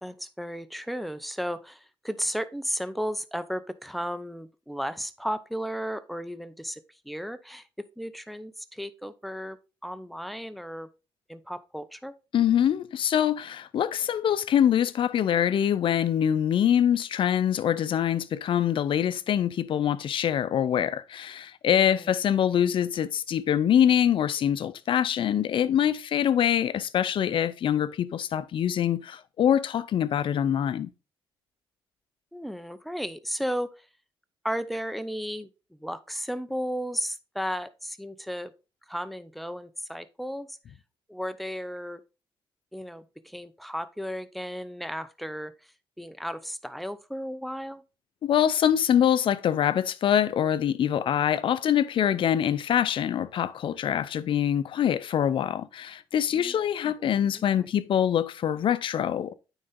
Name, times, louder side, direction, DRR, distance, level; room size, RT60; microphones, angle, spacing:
voice 1, 0.0-7.6 8.0-9.6 9.8-10.9 11.3-12.1 21.7-22.1 32.3-33.9 34.4-35.5 35.8-38.5 38.9-40.6 41.1-42.0 42.7-45.5 46.0-47.8 56.3-56.6 56.8-57.7, equal, ahead, 0.7 m, -34 dB
voice 2, 12.3-30.9 48.2-59.3, left 9 dB, 65° left, 0.6 m, -24 dB
9.2 x 4.0 x 3.7 m
cardioid pair, 85°, 10 cm